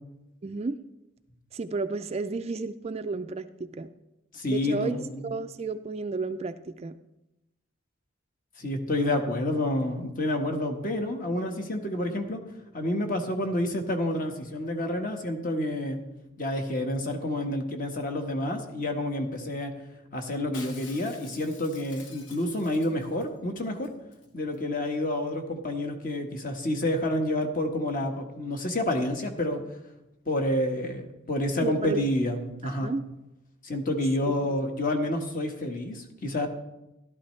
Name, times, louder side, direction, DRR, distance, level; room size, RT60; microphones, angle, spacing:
voice 1, 0.4-0.8 1.5-3.9 4.5-7.0 31.6-32.0 32.6-33.0, right 3 dB, 30° right, 10 dB, 0.4 m, -32 dB
voice 2, 4.3-5.2 8.6-12.4 12.7-16.0 16.4-19.7 20.1-23.9 24.3-29.6 30.3-32.9 33.6-36.5, left 1 dB, 45° left, 4 dB, 1.4 m, -29 dB
Shatter, 20.5-23.3 23.6-23.7 23.8-24.3 24.5-24.6, left 4 dB, 65° left, 1.5 m, -48 dB
14.0 x 12.0 x 3.2 m, 0.93 s
head